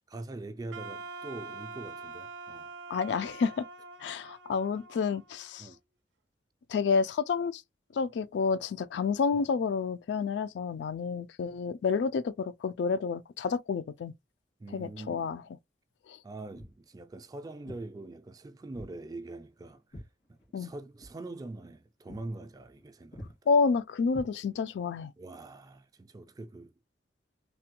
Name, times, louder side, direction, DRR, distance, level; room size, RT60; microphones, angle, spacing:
voice 1, 0.0-2.7 5.6-5.8 9.4-9.5 14.6-15.3 16.2-20.0 20.6-23.3 25.2-26.7, right 2 dB, 20° right, 0.3 m, -43 dB
Wind instrument woodwind instrument, 0.7-5.8, right 4 dB, 85° right, 0.4 m, -45 dB
voice 2, 2.9-3.6 4.0-5.7 6.7-7.6 7.9-14.1 14.7-15.4 16.1-16.2 20.5-20.7 23.5-25.1, left 5 dB, 70° left, 0.3 m, -29 dB
Walk footsteps, 16.5-16.8 17.6-17.9 18.7-19.0 19.3-20.7 21.0-21.2 21.6-21.8 22.1-22.3 22.6-22.8 23.1-23.4 24.1-24.8, equal, 90° left, 1.8 m, -47 dB
3.3 x 2.2 x 2.8 m
head